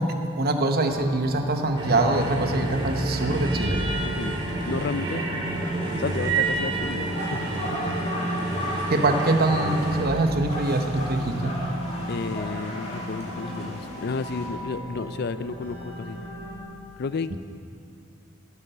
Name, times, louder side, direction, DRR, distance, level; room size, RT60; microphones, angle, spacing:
voice 1, 0.2-3.8 8.9-11.6 17.3-17.4, right 2 dB, 45° right, 5 dB, 0.9 m, -24 dB
sound 1, 0.9-16.6, equal, 90° right, 3.2 m, -35 dB
sound 2, 1.8-10.1, right 3 dB, 25° right, 1.8 m, -29 dB
voice 2, 4.0-4.4 4.7-5.2 6.0-7.4 12.1-16.2 17.0-17.4, left 4 dB, 50° left, 14 dB, 0.4 m, -32 dB
sound 3, 6.8-14.5, left 1 dB, 30° left, 2.3 m, -35 dB
14.5 x 8.5 x 6.6 m, 2.6 s
head